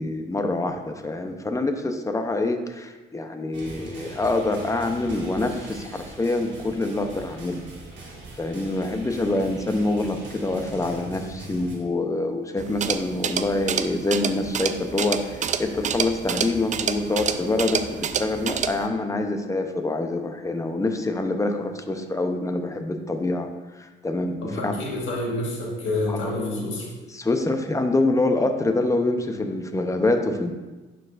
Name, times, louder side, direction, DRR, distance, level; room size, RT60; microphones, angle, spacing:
voice 1, 0.0-7.6 8.4-23.5 23.8-24.8 26.1-26.7 27.1-30.5, left 2 dB, 15° left, 6 dB, 0.7 m, -26 dB
sound 1, 3.5-11.8, right 2 dB, 65° right, 1.8 m, -41 dB
sound 2, 12.6-18.9, right 7 dB, 40° right, 0.4 m, -28 dB
voice 2, 24.4-26.9, left 2 dB, 75° left, -2 dB, 1.7 m, -28 dB
10.5 x 4.6 x 2.5 m, 1.2 s
cardioid pair, 90°, 20 cm